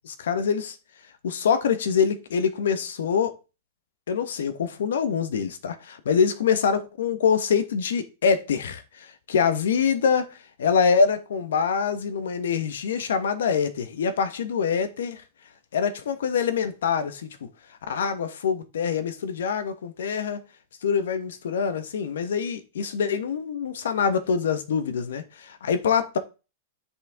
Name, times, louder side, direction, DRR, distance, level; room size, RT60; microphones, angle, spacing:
voice 1, 0.0-0.8 1.2-3.3 4.1-8.8 9.3-10.3 10.6-15.2 15.7-17.3 17.9-20.4 20.8-26.2, left 6 dB, 90° left, 1.4 m, -25 dB
7.9 x 6.6 x 3.7 m
supercardioid pair, 165°, 0 cm